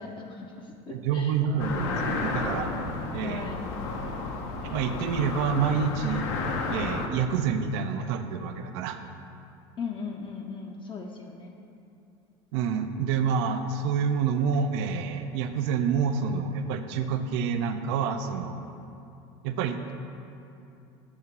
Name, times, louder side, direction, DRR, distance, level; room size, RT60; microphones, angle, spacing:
voice 1, 0.0-1.4 3.2-3.6 9.8-11.5, left 5 dB, 35° left, 1 dB, 0.5 m, -38 dB
voice 2, 0.9-2.7 3.1-3.5 4.7-6.3 6.7-9.0 12.5-18.6 19.4-19.9, right 6 dB, 75° right, 8 dB, 0.4 m, -28 dB
sound 1, 1.6-7.1, left 3 dB, 80° left, 0.7 m, -32 dB
7.3 x 2.8 x 5.9 m, 2.7 s
supercardioid pair, 95°, 14 cm